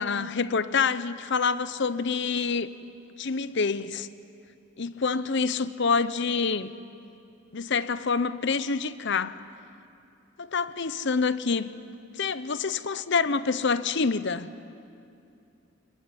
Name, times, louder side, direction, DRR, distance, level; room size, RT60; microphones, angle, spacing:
voice 1, 0.0-2.7 3.2-4.1 4.8-6.7 7.5-9.4 10.4-11.7 12.2-14.5, left 5 dB, 60° left, 0.8 m, -27 dB
27.0 x 21.5 x 9.8 m
head